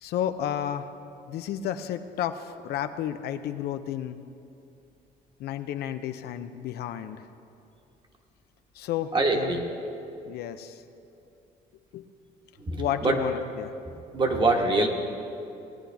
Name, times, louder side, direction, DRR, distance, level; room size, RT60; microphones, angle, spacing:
voice 1, 0.0-0.9 1.3-4.2 5.4-7.3 8.7-9.6 10.3-10.8 11.9-12.1 12.8-13.7, left 10 dB, 70° left, 9 dB, 0.6 m, -32 dB
voice 2, 9.1-9.6 12.6-13.2 14.1-14.9, right 2 dB, 30° right, 2 dB, 1.4 m, -24 dB
19.0 x 10.0 x 3.5 m, 2.7 s
cardioid pair, 110°, 17 cm